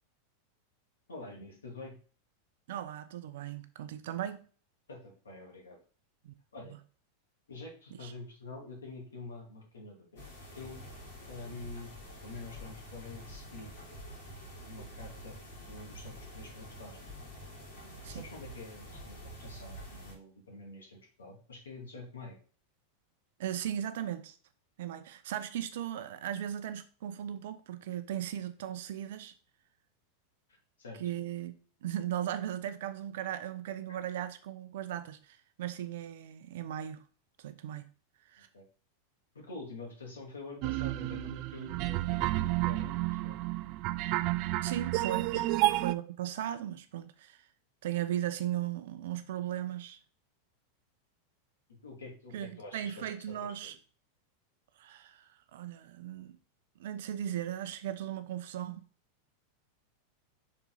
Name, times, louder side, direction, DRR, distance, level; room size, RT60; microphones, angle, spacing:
voice 1, 1.1-1.9 4.9-5.8 6.5-6.7 7.5-10.8 11.3-11.9 12.2-13.7 14.7-17.0 18.0-22.4 30.8-31.0 33.9-34.0 38.5-38.6 39.3-43.4 45.3-45.4 51.7-53.7, left 3 dB, 85° left, 2.5 m, -47 dB
voice 2, 2.7-4.5 6.2-6.3 6.6-6.8 7.9-8.1 17.8-18.3 23.4-24.4 24.8-29.3 31.0-37.0 37.4-37.9 38.3-38.5 44.6-45.3 45.8-47.5 47.8-50.0 52.3-53.8 54.8-56.4 56.8-58.8, right 11 dB, 65° right, 0.7 m, -37 dB
sound 1, 10.2-20.1, equal, 70° left, 3.1 m, -47 dB
sound 2, 40.6-45.9, right 18 dB, 50° right, 0.3 m, -31 dB
5.8 x 4.3 x 4.0 m
hypercardioid pair, 95°, 0 cm